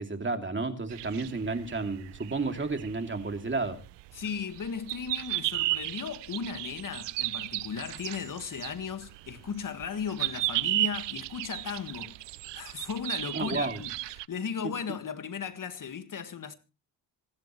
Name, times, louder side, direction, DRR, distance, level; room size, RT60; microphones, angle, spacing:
voice 1, 0.0-3.8 13.3-13.8 14.6-14.7, right 3 dB, 25° right, 2.6 m, -32 dB
sound 1, 0.9-14.3, right 18 dB, 75° right, 0.6 m, -34 dB
voice 2, 4.1-12.2 12.5-16.5, left 6 dB, 45° left, 1.7 m, -36 dB
26.5 x 11.0 x 3.1 m
cardioid pair, 70°, 43 cm